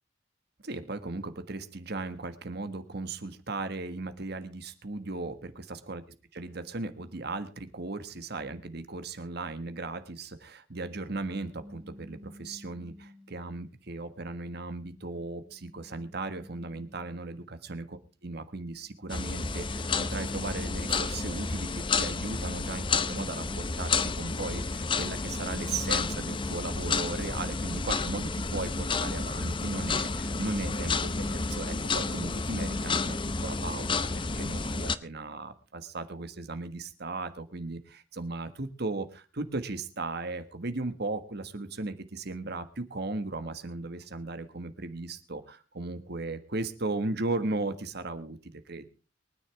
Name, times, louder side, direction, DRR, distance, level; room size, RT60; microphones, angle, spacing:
voice 1, 0.6-6.0 6.3-17.8 18.2-48.9, right 3 dB, 60° right, 10 dB, 1.6 m, -37 dB
sound 1, 11.5-13.7 14.4-17.5 18.6-21.6 22.0-25.0, left 1 dB, 35° right, 2.6 m, -54 dB
sound 2, 19.1-35.0, left 4 dB, 25° left, 0.8 m, -31 dB
23.5 x 10.0 x 3.4 m, 0.33 s
head